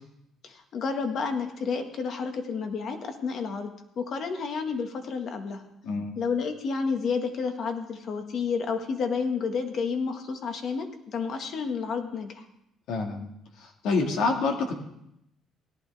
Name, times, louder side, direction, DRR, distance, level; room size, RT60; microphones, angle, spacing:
voice 1, 0.4-5.6 6.2-12.4, left 5 dB, 55° left, 5 dB, 1.7 m, -30 dB
voice 2, 12.9-13.3 13.6-14.8, left 3 dB, 75° left, 2 dB, 2.0 m, -27 dB
17.5 x 11.5 x 3.5 m, 0.80 s
cardioid pair, 105°, 0 cm